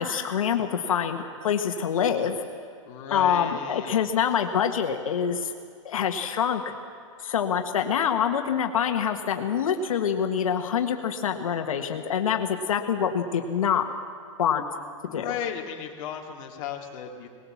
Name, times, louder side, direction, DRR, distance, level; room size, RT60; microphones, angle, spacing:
voice 1, 0.0-2.4 3.1-5.5 5.8-6.6 7.2-13.8 14.4-14.6 15.1-15.2, left 8 dB, 90° left, 5 dB, 1.6 m, -25 dB
voice 2, 2.9-4.1 15.1-17.3, left 9 dB, 35° left, 0 dB, 2.5 m, -35 dB
19.5 x 18.5 x 7.2 m, 2.3 s
hypercardioid pair, 160°, 17 cm